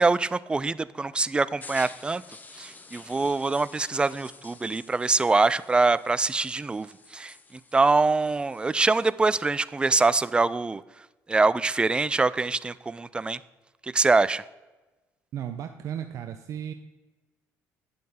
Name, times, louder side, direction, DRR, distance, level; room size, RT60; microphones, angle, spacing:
voice 1, 0.0-2.2 2.6-10.8 11.3-13.4 13.8-14.4, right 3 dB, 15° right, 17 dB, 0.3 m, -24 dB
sound 1, 1.6-9.1, left 3 dB, 25° left, 0.8 m, -49 dB
voice 2, 15.3-16.7, right 9 dB, 60° right, 7 dB, 0.6 m, -35 dB
9.6 x 7.7 x 3.6 m, 1.1 s
cardioid pair, 90°, 6 cm